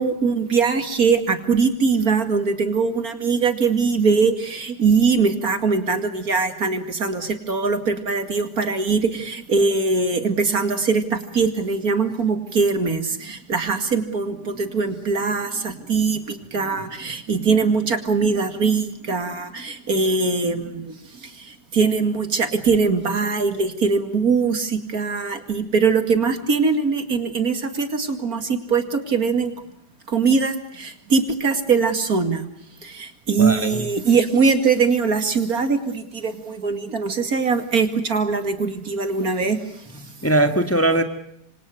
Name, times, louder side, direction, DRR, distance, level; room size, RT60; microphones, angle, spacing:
voice 1, 0.0-29.5 30.1-32.4 32.8-40.0, right 4 dB, 60° right, 8 dB, 2.8 m, -22 dB
voice 2, 33.4-33.9 40.0-41.0, right 1 dB, 10° left, 7 dB, 1.7 m, -20 dB
27.5 x 26.0 x 6.6 m, 0.72 s
omnidirectional pair, 1.8 m